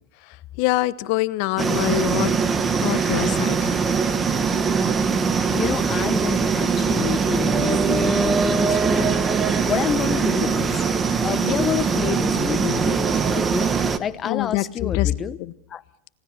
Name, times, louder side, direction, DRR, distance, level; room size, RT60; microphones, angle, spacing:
voice 1, 0.6-2.3 2.8-3.7 14.2-15.1 15.4-15.5, left 19 dB, 50° left, 14 dB, 1.1 m, -25 dB
sound 1, 1.6-14.0, right 5 dB, 20° right, 1.2 m, -21 dB
voice 2, 5.5-9.3 9.6-10.8 11.2-13.7 14.0-15.4 15.7-15.8, left 8 dB, 25° left, 13 dB, 1.1 m, -28 dB
27.5 x 18.5 x 6.7 m, 0.75 s
hypercardioid pair, 130°, 0 cm